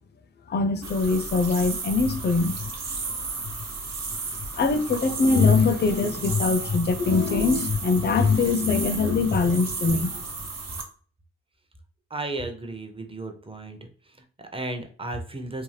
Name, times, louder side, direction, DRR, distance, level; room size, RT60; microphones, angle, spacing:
voice 1, 0.5-2.7 4.5-10.2, left 4 dB, 35° left, 0.4 m, -22 dB
sound 1, 0.8-10.8, right 4 dB, 60° right, 0.7 m, -33 dB
voice 2, 12.1-13.8 14.1-15.6, right 2 dB, 20° right, 0.6 m, -34 dB
2.6 x 2.2 x 3.2 m
cardioid pair, 45°, 29 cm